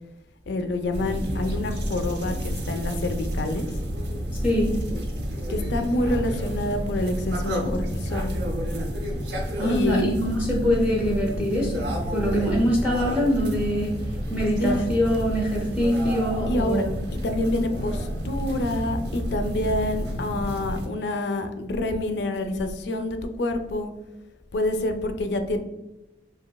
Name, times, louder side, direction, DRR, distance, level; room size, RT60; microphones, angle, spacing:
voice 1, 0.5-3.7 5.5-8.3 9.6-10.0 14.6-14.9 16.5-16.8 17.2-23.9 24.5-25.6, left 1 dB, 65° left, 7 dB, 0.4 m, -27 dB
sound 1, 0.9-20.9, equal, 65° right, 0.6 m, -30 dB
voice 2, 4.3-4.8 9.6-14.0 14.3-17.0, equal, 5° right, -3 dB, 0.5 m, -24 dB
3.0 x 2.7 x 2.2 m, 0.98 s
head